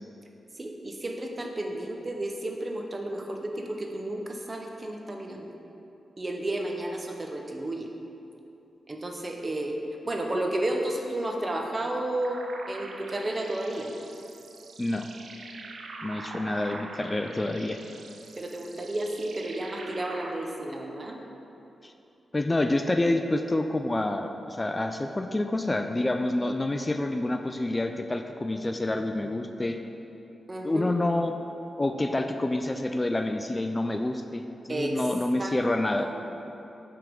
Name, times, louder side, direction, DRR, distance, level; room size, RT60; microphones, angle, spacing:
voice 1, 0.6-5.5 6.2-7.9 8.9-9.8 10.0-13.9 18.4-21.2 30.5-31.0 34.7-35.1 35.4-35.6 36.0-36.2, right 1 dB, 35° right, 2 dB, 0.7 m, -32 dB
sound 1, 12.2-20.3, right 3 dB, 80° right, 0.5 m, -44 dB
voice 2, 16.0-17.8 21.8-21.9 22.3-29.8 30.6-31.3 31.8-34.4 34.7-36.1, left 2 dB, 25° left, 6 dB, 0.3 m, -28 dB
5.7 x 3.6 x 5.1 m, 2.9 s
supercardioid pair, 50°, 0 cm